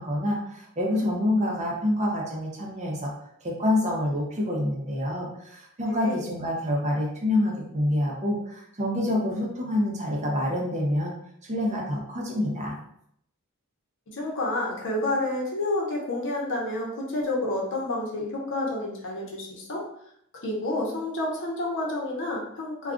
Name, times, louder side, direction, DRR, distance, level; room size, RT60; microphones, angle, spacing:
voice 1, 0.0-3.1 3.4-11.1 11.4-12.8, left 1 dB, 30° right, -2 dB, 0.6 m, -27 dB
voice 2, 5.8-6.3 14.1-19.8 20.4-22.9, left 2 dB, 55° left, -2 dB, 0.8 m, -29 dB
2.3 x 2.3 x 3.6 m, 0.72 s
head